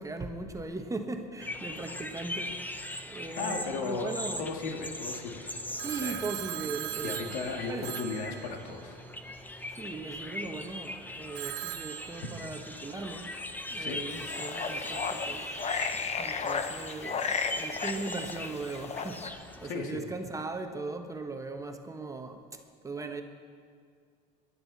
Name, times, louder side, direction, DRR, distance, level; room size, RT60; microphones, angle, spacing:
voice 1, 0.0-4.5 5.8-7.3 7.7-7.9 9.8-13.3 13.7-15.5 16.2-23.2, right 3 dB, 15° right, 1.2 m, -39 dB
sound 1, 1.4-19.7, left 1 dB, 10° left, 1.0 m, -40 dB
voice 2, 3.4-4.1 4.4-5.5 5.8-6.3 7.0-9.0 13.8-14.0 19.7-20.0, left 4 dB, 75° left, 2.2 m, -35 dB
Telephone, 5.8-9.1 11.3-12.9, right 17 dB, 60° right, 0.6 m, -40 dB
sound 2, 14.1-19.3, left 5 dB, 30° left, 1.0 m, -34 dB
22.0 x 11.0 x 4.2 m
hypercardioid pair, 90°, 21 cm